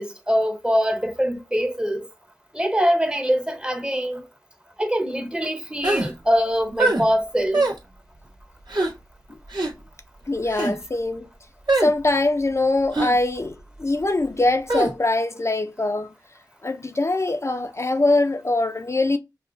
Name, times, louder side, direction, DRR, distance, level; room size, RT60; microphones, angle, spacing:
voice 1, 0.0-2.1 2.5-4.2 4.8-7.6, equal, 15° right, 0.8 m, -23 dB
sound 1, 5.8-6.1 6.8-7.0 7.5-7.8 8.7-8.9 9.5-9.7 10.5-10.7 11.7-11.9 12.9-13.1 14.7-14.9, right 2 dB, 70° right, 1.5 m, -22 dB
voice 2, 10.3-11.3 11.8-16.1 16.6-19.2, left 2 dB, 40° left, 0.4 m, -22 dB
5.5 x 2.1 x 2.5 m
wide cardioid pair, 55°, 7 cm